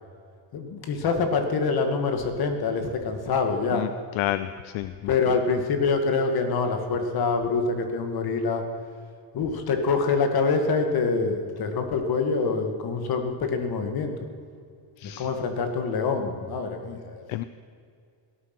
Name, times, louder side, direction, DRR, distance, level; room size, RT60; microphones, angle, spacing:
voice 1, 0.5-3.8 5.1-8.6 9.3-14.1 15.0-17.3, left 4 dB, 45° left, 6 dB, 2.1 m, -25 dB
voice 2, 4.1-5.1 15.0-15.3 17.3-17.4, left 15 dB, 70° left, 13 dB, 0.7 m, -30 dB
17.5 x 13.5 x 6.1 m, 2.3 s
cardioid pair, 145°, 49 cm